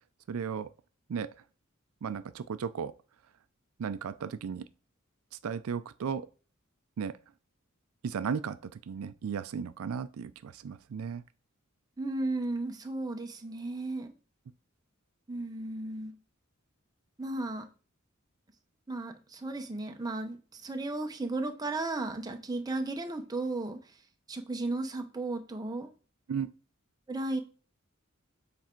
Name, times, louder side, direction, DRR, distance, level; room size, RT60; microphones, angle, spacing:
voice 1, 0.3-0.7 1.1-1.3 2.0-2.9 3.8-4.7 5.4-6.3 7.0-7.2 8.0-11.2 26.3-26.5, right 6 dB, 90° right, 0.4 m, -35 dB
voice 2, 12.0-14.1 15.3-16.1 17.2-17.7 18.9-23.9 24.3-25.9 27.1-27.4, right 2 dB, 20° right, 0.7 m, -35 dB
7.2 x 3.4 x 4.4 m
head